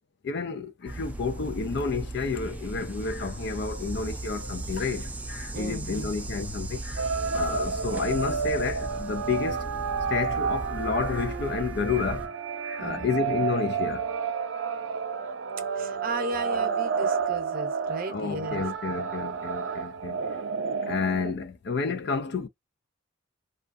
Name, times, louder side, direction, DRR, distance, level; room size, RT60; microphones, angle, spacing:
voice 1, 0.2-9.7 10.1-12.3 12.6-14.1 18.1-20.2 20.8-22.5, left 5 dB, 60° left, 0.4 m, -30 dB
sound 1, 0.9-12.3, right 2 dB, 10° right, 0.4 m, -37 dB
voice 2, 5.5-6.1 12.8-13.2 15.7-18.6, right 2 dB, 50° right, 0.7 m, -35 dB
sound 2, 7.0-21.3, right 6 dB, 80° right, 0.4 m, -31 dB
2.3 x 2.2 x 2.5 m
head